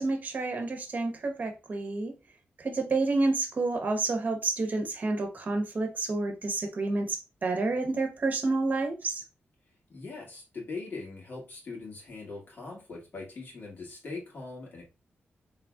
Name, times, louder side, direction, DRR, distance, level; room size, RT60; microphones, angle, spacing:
voice 1, 0.0-2.1 2.6-9.2, right 3 dB, 45° right, 0.9 m, -29 dB
voice 2, 9.9-14.8, left 3 dB, 55° left, 2.0 m, -41 dB
3.9 x 3.3 x 2.3 m
wide cardioid pair, 115°, 4 cm